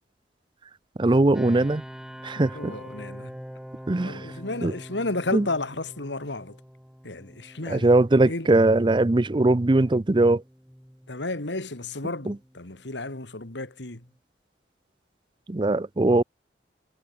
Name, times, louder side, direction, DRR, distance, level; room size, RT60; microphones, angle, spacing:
voice 1, 1.0-1.8 2.2-2.7 3.9-4.2 4.6-4.7 5.3-5.4 7.7-10.4 12.3-12.4 15.5-16.2, right 2 dB, 25° right, 0.5 m, -20 dB
sound 1, 1.3-14.2, equal, 5° right, 5.2 m, -45 dB
voice 2, 2.5-3.4 4.0-6.6 7.0-7.9 8.3-8.5 11.1-14.1, left 2 dB, 85° left, 2.6 m, -33 dB
head